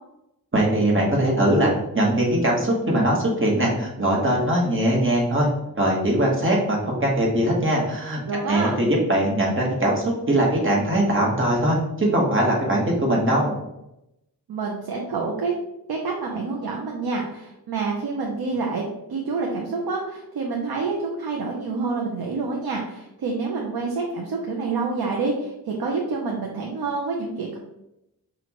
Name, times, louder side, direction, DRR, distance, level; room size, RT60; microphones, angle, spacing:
voice 1, 0.5-5.5 5.7-8.2 8.5-13.5, right 1 dB, 35° right, -2 dB, 1.3 m, -21 dB
voice 2, 8.3-8.8 14.5-15.5 15.9-18.8 19.1-27.6, right 4 dB, 80° right, -1 dB, 0.7 m, -27 dB
5.9 x 2.5 x 3.0 m, 0.86 s
wide cardioid pair, 100°, 37 cm